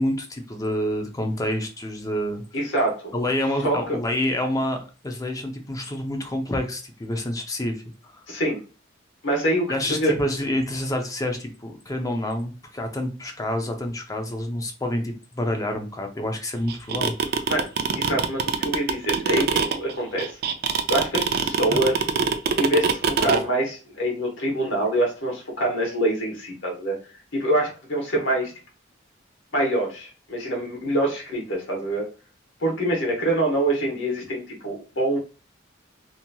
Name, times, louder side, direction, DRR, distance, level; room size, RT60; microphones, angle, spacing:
voice 1, 0.0-2.4 3.1-4.8 5.0-7.8 9.7-17.1 21.7-21.8, left 1 dB, 20° left, 4 dB, 0.5 m, -27 dB
voice 2, 2.5-3.1 3.6-4.0 8.3-8.6 9.2-10.2 17.5-17.6 18.0-20.4 20.9-22.0 22.6-27.0 27.3-28.5 29.5-32.0 32.6-35.2, right 1 dB, 75° left, 0 dB, 1.2 m, -25 dB
sound 1, 16.7-23.4, right 6 dB, 55° right, 0.4 m, -22 dB
2.9 x 2.8 x 2.2 m, 0.34 s
head